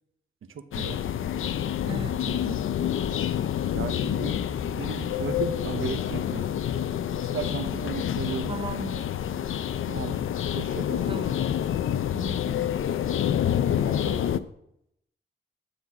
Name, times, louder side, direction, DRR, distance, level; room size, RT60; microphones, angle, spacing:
voice 1, 0.5-1.0 2.3-2.6 3.7-4.3 4.6-6.5 7.2-8.5 9.9-10.2 10.5-11.1, right 7 dB, 85° right, 9 dB, 0.7 m, -35 dB
sound 1, 0.7-14.4, left 10 dB, 80° left, 0.4 m, -28 dB
voice 2, 1.9-2.6 8.5-9.1 11.1-11.4 12.0-12.9 13.6-14.5, right 3 dB, 25° right, 11 dB, 0.5 m, -39 dB
9.8 x 4.0 x 7.3 m, 0.77 s
wide cardioid pair, 105°, 21 cm